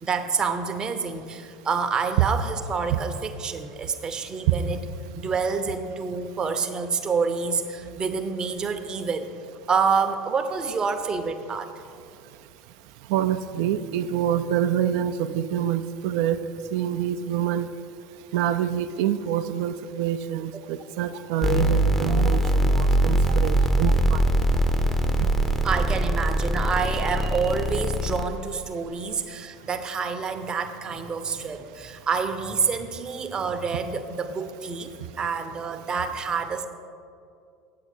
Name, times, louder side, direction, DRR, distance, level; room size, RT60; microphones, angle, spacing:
voice 1, 0.0-4.8 5.1-9.3 9.7-11.7 25.6-34.9 35.2-36.7, right 5 dB, 25° right, 7 dB, 0.7 m, -27 dB
voice 2, 13.1-16.4 16.7-17.7 18.3-24.2, right 10 dB, 55° right, 11 dB, 0.4 m, -26 dB
sound 1, 21.4-28.3, right 1 dB, 10° left, 0.6 m, -22 dB
8.3 x 8.0 x 4.4 m, 2.4 s
figure-of-eight pair, 70°, 3 cm